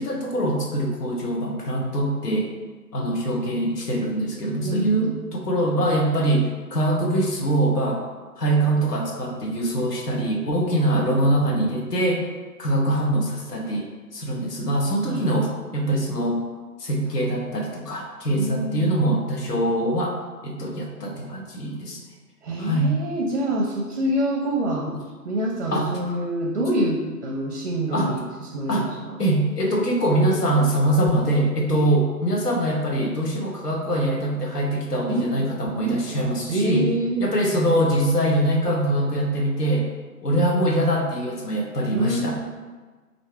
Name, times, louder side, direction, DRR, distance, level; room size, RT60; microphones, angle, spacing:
voice 1, 0.0-2.5 2.9-8.0 8.4-12.2 12.6-13.8 14.1-16.4 16.8-22.0 22.6-22.9 24.9-25.0 25.7-26.2 27.9-28.1 28.7-28.9 29.2-36.9 37.2-39.9 40.2-42.3, right 1 dB, 75° left, 0 dB, 1.1 m, -23 dB
voice 2, 4.6-5.3 15.1-15.2 18.3-18.9 22.4-24.9 25.2-29.2 31.7-31.8 35.3-35.5 35.8-36.0 36.5-37.3 41.9-42.3, right 1 dB, 45° right, -1 dB, 0.6 m, -26 dB
3.2 x 2.7 x 4.4 m, 1.4 s
figure-of-eight pair, 150°, 48 cm